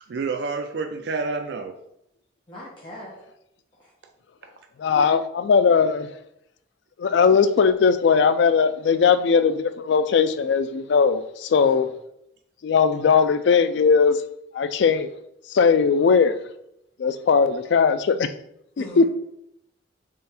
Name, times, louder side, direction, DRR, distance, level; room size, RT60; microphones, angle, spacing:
voice 1, 0.1-1.7 4.4-4.5, right 4 dB, 60° right, 0.4 m, -28 dB
voice 2, 2.5-3.2 3.8-3.9 11.6-11.8 18.8-19.1, left 1 dB, 25° left, 1.0 m, -40 dB
voice 3, 4.8-6.1 7.0-11.9 12.6-14.2 14.5-15.1 15.5-16.4 17.0-18.3 18.8-19.1, left 5 dB, 70° left, 0.3 m, -19 dB
3.7 x 3.4 x 4.2 m
head